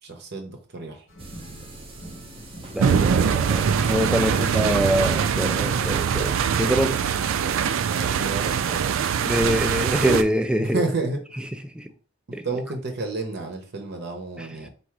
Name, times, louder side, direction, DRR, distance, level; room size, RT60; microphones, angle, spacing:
voice 1, 0.0-1.1 4.3-4.5 7.8-9.0 10.6-11.4 12.3-14.7, right 3 dB, 60° right, 0.9 m, -31 dB
sound 1, 1.1-6.5, right 1 dB, 70° left, 1.2 m, -46 dB
sound 2, 1.2-6.3, right 2 dB, 30° right, 0.7 m, -43 dB
voice 2, 2.7-7.0 9.3-10.8 11.7-11.9 12.3-12.4 14.4-14.5, equal, 5° right, 0.3 m, -24 dB
sound 3, 2.8-10.2, right 7 dB, 90° right, 0.4 m, -23 dB
3.6 x 2.5 x 4.6 m
head